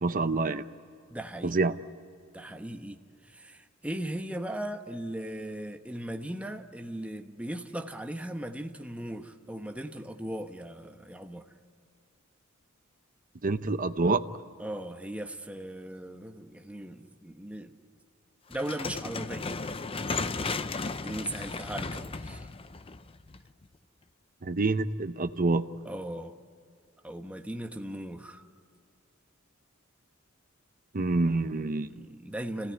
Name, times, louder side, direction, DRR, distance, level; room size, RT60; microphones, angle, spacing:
voice 1, 0.0-0.6 1.4-1.8 13.4-14.2 24.4-25.7 30.9-31.9, right 3 dB, 40° right, 0.7 m, -27 dB
voice 2, 1.1-1.6 2.3-11.5 14.6-17.8 18.5-19.7 21.0-22.5 25.8-26.3 27.0-28.4 31.9-32.7, right 1 dB, 5° right, 1.1 m, -38 dB
sound 1, 18.5-23.6, left 4 dB, 25° left, 0.6 m, -35 dB
27.5 x 17.0 x 9.7 m
head